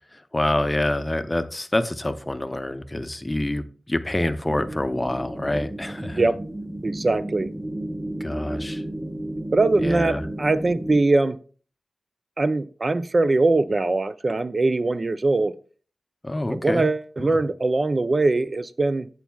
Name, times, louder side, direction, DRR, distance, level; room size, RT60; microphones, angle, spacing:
voice 1, 0.1-6.3 8.2-8.8 9.8-10.3 16.2-16.9 17.2-17.4, left 1 dB, 15° left, 9 dB, 0.6 m, -26 dB
sound 1, 4.5-11.0, right 1 dB, 15° right, 2.1 m, -33 dB
voice 2, 6.8-7.5 9.5-11.4 12.4-15.5 16.5-19.1, right 2 dB, 35° right, 11 dB, 0.3 m, -22 dB
11.5 x 8.1 x 2.3 m, 0.41 s
wide cardioid pair, 125°, 0 cm